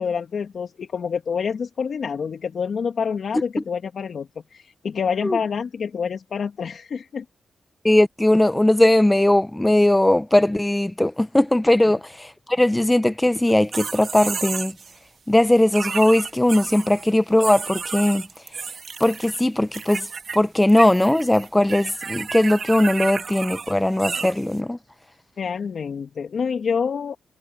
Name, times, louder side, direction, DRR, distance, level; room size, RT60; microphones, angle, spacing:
voice 1, 0.0-7.2 11.9-12.0 25.4-27.2, left 6 dB, 65° left, 2.2 m, -27 dB
voice 2, 7.8-14.7 15.3-18.2 19.0-20.1 20.3-24.8, left 1 dB, 10° left, 0.9 m, -19 dB
sound 1, 13.5-14.9 15.7-17.1 17.4-19.4 19.7-20.4 20.6-24.6, right 5 dB, 55° right, 2.5 m, -32 dB
cardioid pair, 65°, 0 cm